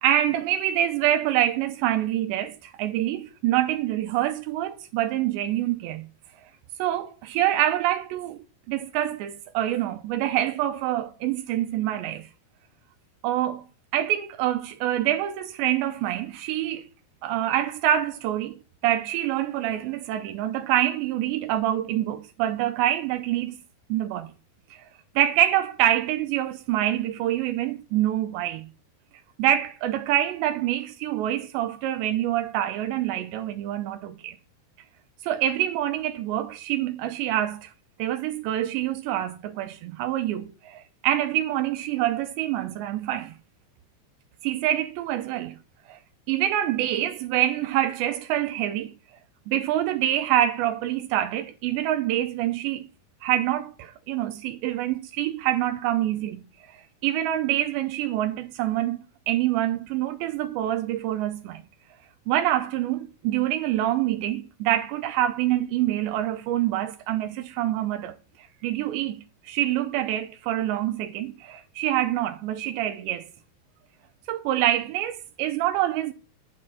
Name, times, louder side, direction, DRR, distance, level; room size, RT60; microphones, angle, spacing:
voice 1, 0.0-6.1 6.8-12.3 13.2-13.6 13.9-16.9 17.2-18.6 18.8-23.6 23.9-24.3 24.7-24.8 25.2-28.7 29.4-34.4 35.2-37.7 38.0-43.3 44.4-45.6 45.9-46.0 46.3-48.9 49.5-52.9 53.2-56.4 57.0-61.6 62.3-68.2 68.6-73.3 74.3-76.1, right 12 dB, 85° right, 3.1 m, -26 dB
11.5 x 6.5 x 7.5 m
omnidirectional pair, 5.0 m